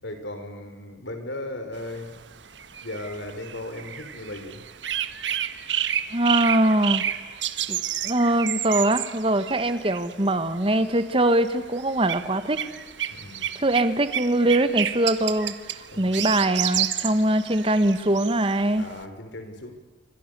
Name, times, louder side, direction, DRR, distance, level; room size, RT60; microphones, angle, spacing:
voice 1, 0.0-2.3 2.6-4.6 13.1-13.5 15.9-16.3 18.8-19.7, left 1 dB, 80° left, 6 dB, 5.5 m, -37 dB
sound 1, 1.7-19.0, right 10 dB, 80° right, 1.4 m, -31 dB
voice 2, 6.1-7.1 7.7-12.6 13.5-15.5 16.0-18.8, right 1 dB, 30° right, 11 dB, 1.5 m, -22 dB
27.5 x 25.0 x 7.0 m, 1.2 s
head